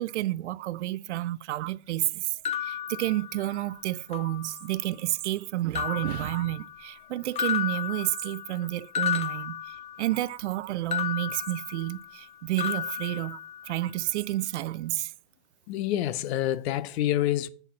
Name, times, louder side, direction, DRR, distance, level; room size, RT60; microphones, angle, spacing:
voice 1, 0.0-2.3 2.6-9.6 10.0-13.4 13.7-15.1, right 15 dB, 90° right, 0.5 m, -30 dB
sound 1, 2.4-3.7 4.1-4.9 5.7-7.0 7.4-10.3 10.9-12.3 12.6-13.9, left 9 dB, 20° left, 0.5 m, -34 dB
voice 2, 15.7-17.5, left 13 dB, 70° left, 0.8 m, -27 dB
8.0 x 4.2 x 6.9 m
hypercardioid pair, 120°, 33 cm